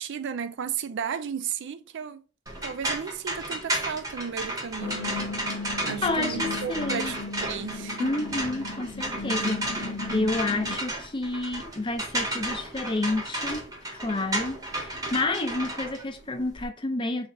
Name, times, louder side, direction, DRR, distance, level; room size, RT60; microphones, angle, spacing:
voice 1, 0.0-2.2 2.6-5.2 5.6-8.1, right 7 dB, 55° right, 0.4 m, -34 dB
sound 1, 2.5-16.7, right 1 dB, 15° right, 0.8 m, -33 dB
sound 2, 4.8-10.8, left 3 dB, 75° left, 0.5 m, -36 dB
voice 2, 6.0-7.1 8.0-9.6 10.1-13.6 13.9-17.3, left 2 dB, 25° left, 0.5 m, -29 dB
3.2 x 2.4 x 4.2 m
head